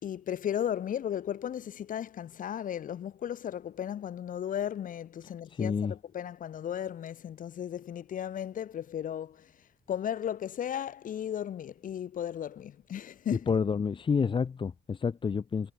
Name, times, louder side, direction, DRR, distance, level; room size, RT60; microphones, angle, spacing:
voice 1, 0.0-9.5 9.9-13.5, left 10 dB, 50° left, 3.9 m, -35 dB
voice 2, 5.5-5.9 13.5-15.7, left 6 dB, 30° left, 1.4 m, -29 dB
cardioid pair, 110°, 17 cm